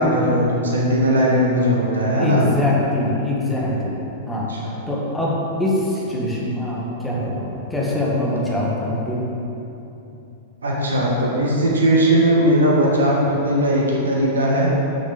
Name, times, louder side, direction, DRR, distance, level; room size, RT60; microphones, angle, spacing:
voice 1, 0.0-2.4 4.3-4.7 10.6-14.7, equal, 80° right, -3 dB, 1.4 m, -18 dB
voice 2, 2.2-4.5 4.9-9.3, left 1 dB, 5° left, -5 dB, 1.9 m, -23 dB
7.0 x 6.4 x 5.2 m, 2.9 s
figure-of-eight pair, 95°, 0 cm